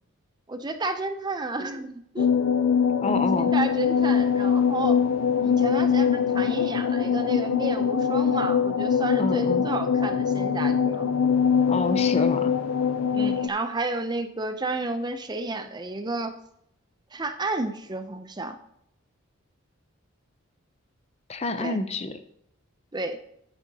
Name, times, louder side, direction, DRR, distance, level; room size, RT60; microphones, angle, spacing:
voice 1, 0.5-2.4 3.0-5.0 5.4-11.1 13.1-16.4 17.1-18.6 21.6-21.8 22.9-23.2, right 2 dB, 20° right, 8 dB, 0.5 m, -31 dB
sound 1, 2.2-13.5, left 7 dB, 85° left, 0.5 m, -23 dB
voice 2, 3.0-3.5 9.2-9.6 11.7-12.5 21.3-22.2, left 3 dB, 30° left, 9 dB, 0.5 m, -28 dB
10.0 x 9.1 x 2.8 m, 0.76 s
head